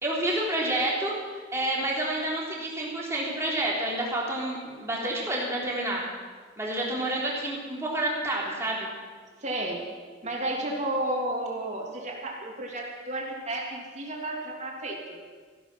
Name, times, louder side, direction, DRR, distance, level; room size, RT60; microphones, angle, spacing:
voice 1, 0.0-6.0 6.6-8.9, right 1 dB, 15° right, -4 dB, 3.4 m, -29 dB
voice 2, 9.4-9.8 10.2-15.2, right 1 dB, 40° right, -1 dB, 3.0 m, -32 dB
15.0 x 12.5 x 6.1 m, 1.5 s
head